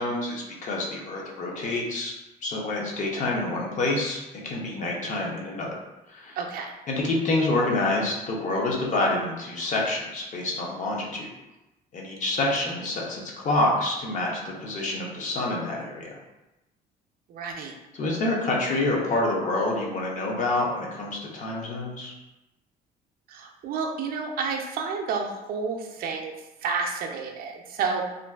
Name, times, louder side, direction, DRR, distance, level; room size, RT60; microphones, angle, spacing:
voice 1, 0.0-2.1 2.4-5.7 6.1-6.4 6.9-11.3 11.9-16.2 17.9-22.1, left 2 dB, 50° left, -2 dB, 0.7 m, -27 dB
voice 2, 6.4-6.7 17.3-17.7 23.3-26.3 26.6-28.1, right 5 dB, 60° right, 2 dB, 0.4 m, -30 dB
2.5 x 2.3 x 2.3 m, 0.99 s
cardioid pair, 110°, 17 cm